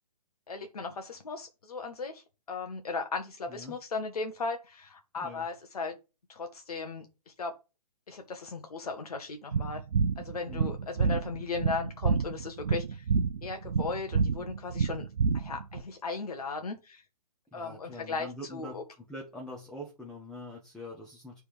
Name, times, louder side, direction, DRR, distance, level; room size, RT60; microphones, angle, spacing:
voice 1, 0.5-5.9 6.3-7.6 8.1-9.8 10.2-13.1 13.4-15.1 15.3-17.0 17.5-18.8, left 4 dB, 70° left, 5 dB, 0.9 m, -37 dB
sound 1, 9.5-15.8, right 5 dB, 75° right, 0.6 m, -29 dB
voice 2, 17.5-18.8 19.1-21.4, left 1 dB, 5° left, -3 dB, 0.8 m, -43 dB
9.6 x 3.4 x 3.1 m, 0.29 s
figure-of-eight pair, 130°, 20 cm